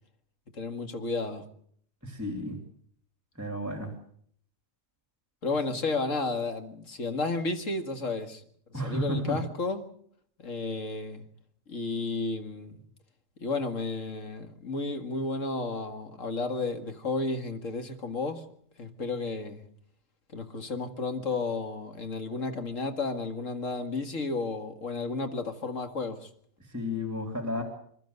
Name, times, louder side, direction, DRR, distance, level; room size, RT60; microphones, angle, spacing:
voice 1, 0.5-1.4 5.4-8.4 8.7-9.9 10.4-11.2 11.7-12.8 13.4-18.4 18.8-19.7 20.3-26.3, left 3 dB, 65° left, 2.3 m, -32 dB
voice 2, 2.0-2.6 3.4-3.9 8.7-9.4 26.6-27.6, left 1 dB, 10° right, 2.8 m, -32 dB
27.0 x 12.5 x 8.1 m
omnidirectional pair, 1.4 m